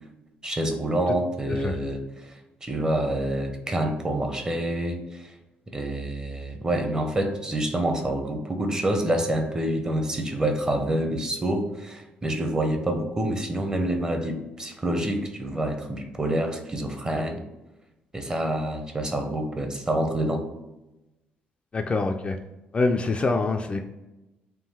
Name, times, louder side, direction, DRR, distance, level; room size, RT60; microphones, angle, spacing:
voice 1, 0.4-5.3 5.7-17.4 18.1-20.4, right 1 dB, 20° right, 5 dB, 0.7 m, -27 dB
voice 2, 21.7-22.4 22.7-23.8, left 3 dB, 30° left, 4 dB, 0.3 m, -25 dB
3.7 x 2.5 x 4.2 m, 1.0 s
cardioid pair, 95°, 4 cm